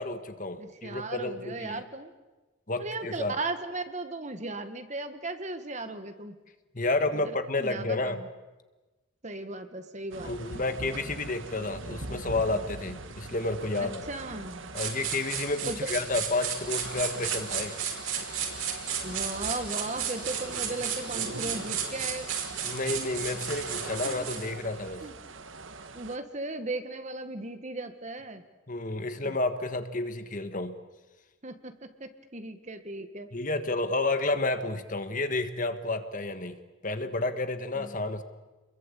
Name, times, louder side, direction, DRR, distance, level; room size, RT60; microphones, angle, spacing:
voice 1, 0.0-1.8 2.7-3.4 6.7-8.2 10.2-14.0 14.7-17.7 22.6-25.0 28.7-30.8 33.3-36.6 36.8-38.2, left 2 dB, 40° left, 8 dB, 1.6 m, -30 dB
voice 2, 0.6-2.1 2.8-6.3 7.1-8.3 9.2-10.3 13.8-14.6 15.7-15.8 19.0-22.3 25.0-25.1 25.9-28.4 29.2-29.4 31.4-33.3 37.8-37.9, right 2 dB, 35° right, 8 dB, 1.8 m, -37 dB
sound 1, 10.1-26.2, right 3 dB, 70° right, 1.5 m, -42 dB
sound 2, 14.8-24.5, right 7 dB, 90° right, 5.8 m, -33 dB
28.0 x 22.0 x 8.5 m, 1.1 s
head